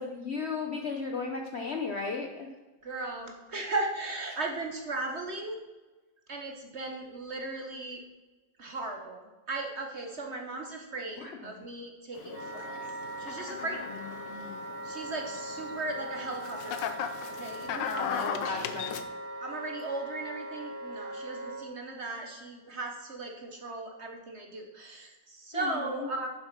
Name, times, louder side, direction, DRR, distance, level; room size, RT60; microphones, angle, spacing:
voice 1, 0.0-2.5 11.2-11.3 14.2-14.6 18.0-19.0 25.5-25.7, left 4 dB, 55° left, 2 dB, 0.8 m, -35 dB
voice 2, 2.8-5.6 6.3-8.0 8.6-9.2 9.5-12.7 13.2-14.0 14.8-16.9 17.3-18.3 19.4-26.3, right 2 dB, 45° right, 3 dB, 1.0 m, -37 dB
sound 1, 12.2-19.0, left 8 dB, 80° left, 1.4 m, -38 dB
Wind instrument woodwind instrument, 12.3-21.6, right 1 dB, 35° left, 2.7 m, -40 dB
7.4 x 7.2 x 5.9 m, 1.2 s
omnidirectional pair, 1.9 m